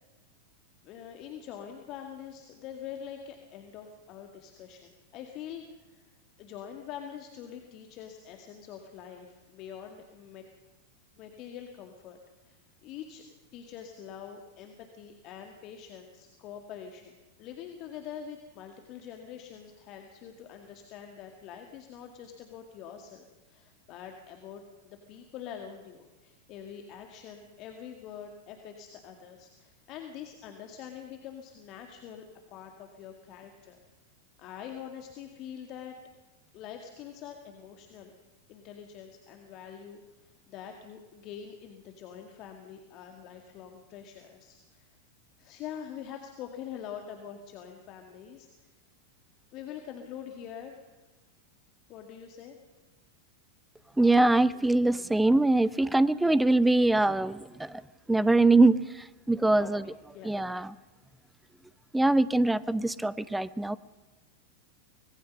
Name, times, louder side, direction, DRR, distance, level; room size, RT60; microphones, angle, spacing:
voice 1, 0.8-6.1 6.4-10.4 11.1-12.2 12.4-13.2 13.5-33.8 34.4-36.0 36.5-38.1 38.5-44.9 45.4-48.7 49.5-51.0 51.9-52.6 59.6-59.7 60.1-60.6, left 9 dB, 40° left, 4 dB, 2.1 m, -45 dB
voice 2, 54.0-57.8 58.1-59.8 60.2-60.7 61.9-63.8, right 2 dB, 5° right, 18 dB, 0.7 m, -23 dB
25.0 x 19.5 x 5.6 m, 1.1 s
figure-of-eight pair, 90°, 0 cm